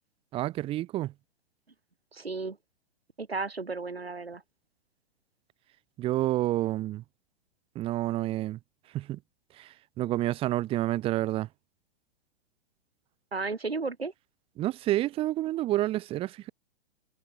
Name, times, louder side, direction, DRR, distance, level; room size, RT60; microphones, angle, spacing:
voice 1, 0.3-1.1 6.0-7.0 7.7-8.6 8.9-9.2 9.6-11.5 14.6-16.5, right 15 dB, 20° right, 0.8 m, -29 dB
voice 2, 2.1-2.6 3.2-4.4 13.3-14.1, right 4 dB, 75° right, 6.0 m, -33 dB
figure-of-eight pair, 110°, 30 cm